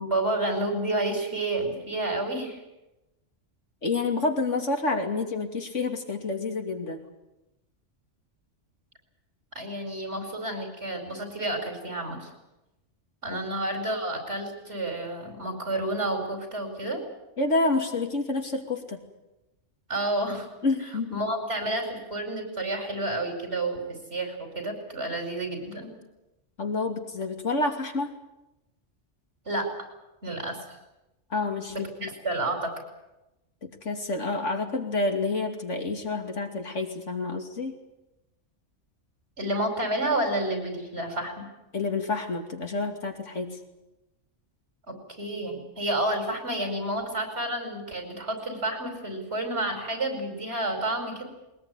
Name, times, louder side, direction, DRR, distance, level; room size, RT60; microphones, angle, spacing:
voice 1, 0.0-2.6 9.6-12.3 13.2-17.0 19.9-20.5 21.1-23.8 24.1-25.9 29.5-29.7 30.2-30.6 31.7-32.7 39.4-41.5 44.9-51.2, right 1 dB, 60° right, 4 dB, 5.4 m, -30 dB
voice 2, 3.8-7.0 13.3-13.5 17.4-19.0 20.6-21.2 26.6-28.1 31.3-32.1 33.6-37.7 41.7-43.6, left 3 dB, 80° left, 4 dB, 3.0 m, -28 dB
21.5 x 20.0 x 9.7 m, 0.97 s
omnidirectional pair, 1.2 m